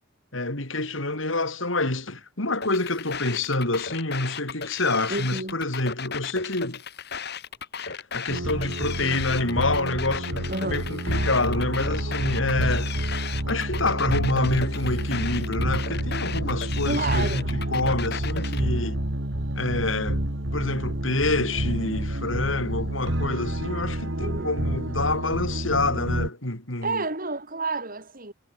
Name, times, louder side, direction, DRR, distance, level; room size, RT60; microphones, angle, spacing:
voice 1, 0.3-6.8 7.8-12.9 13.5-19.0 19.5-20.2 20.5-27.0, left 2 dB, 80° left, 5.1 m, -27 dB
sound 1, 2.6-18.6, left 7 dB, 55° left, 5.2 m, -35 dB
voice 2, 5.1-5.6 10.5-10.9 16.8-17.5 24.2-24.5 26.8-28.3, right 3 dB, 45° right, 7.8 m, -30 dB
sound 2, 8.3-26.3, right 1 dB, 75° right, 3.1 m, -29 dB
head